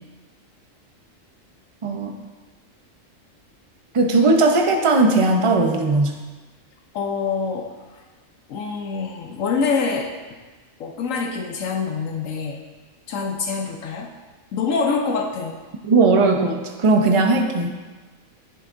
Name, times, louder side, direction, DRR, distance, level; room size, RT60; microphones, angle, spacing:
voice 1, 1.8-2.1 3.9-6.2 15.8-17.7, right 3 dB, 30° right, 3 dB, 0.6 m, -18 dB
voice 2, 6.9-7.7 8.5-10.1 10.8-12.6 13.1-14.1 14.5-15.6, left 5 dB, 75° left, 2 dB, 1.1 m, -25 dB
10.5 x 8.0 x 2.6 m, 1.3 s
omnidirectional pair, 1.4 m